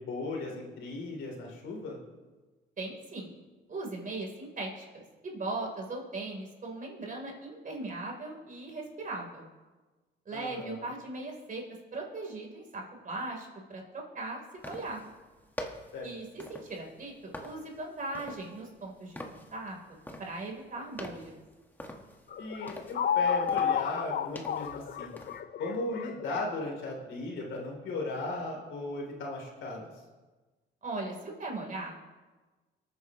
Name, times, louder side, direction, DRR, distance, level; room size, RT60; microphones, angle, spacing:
voice 1, 0.0-2.0 10.3-10.9 15.9-16.1 22.4-25.1 25.6-29.9, left 2 dB, 80° left, 0 dB, 3.4 m, -37 dB
voice 2, 2.8-3.3 3.7-9.5 10.3-11.6 11.9-15.0 16.0-19.8 20.2-21.4 30.8-32.0, right 2 dB, 40° right, 0 dB, 3.8 m, -39 dB
sound 1, 14.6-25.4, left 1 dB, 10° left, 1.5 m, -46 dB
sound 2, 22.3-26.9, left 8 dB, 50° left, 0.6 m, -31 dB
24.0 x 9.3 x 3.1 m, 1.2 s
cardioid pair, 90°, 20 cm